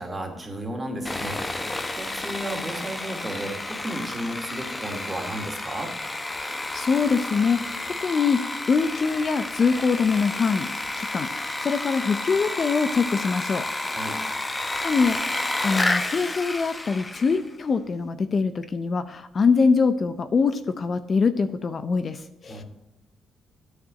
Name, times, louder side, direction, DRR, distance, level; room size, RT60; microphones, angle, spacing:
voice 1, 0.0-1.4 1.9-5.9 13.9-14.2 22.5-22.6, right 1 dB, 20° right, 3 dB, 2.4 m, -33 dB
Sawing, 1.1-17.5, left 2 dB, 15° left, 1.0 m, -31 dB
voice 2, 6.7-8.4 8.7-10.7 11.0-14.0 14.8-15.2 15.6-22.6, left 5 dB, 40° left, 12 dB, 0.6 m, -23 dB
9.0 x 6.7 x 7.5 m, 0.98 s
cardioid pair, 90°, 0 cm